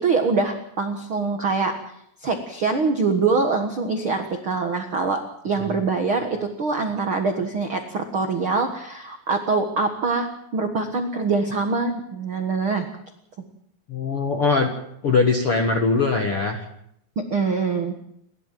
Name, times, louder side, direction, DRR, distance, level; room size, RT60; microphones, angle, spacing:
voice 1, 0.0-1.7 2.2-10.3 10.5-12.9 17.1-18.0, right 4 dB, 65° right, 5 dB, 1.3 m, -24 dB
voice 2, 13.9-14.7 15.0-16.6, left 4 dB, 60° left, 4 dB, 1.5 m, -21 dB
29.5 x 12.5 x 7.6 m, 0.75 s
omnidirectional pair, 5.0 m